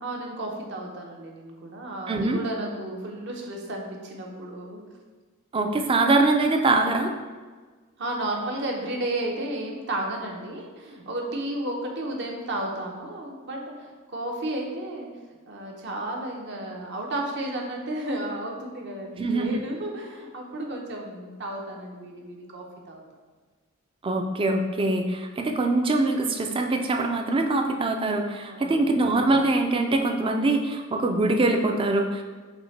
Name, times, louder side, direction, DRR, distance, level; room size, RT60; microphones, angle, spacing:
voice 1, 0.0-4.8 8.0-15.1 15.5-23.0 28.4-28.8, right 1 dB, 55° right, 0 dB, 0.8 m, -33 dB
voice 2, 2.1-2.4 5.5-7.1 19.2-19.6 24.0-32.2, right 2 dB, 25° right, 4 dB, 0.3 m, -23 dB
5.9 x 2.1 x 4.1 m, 1.4 s
head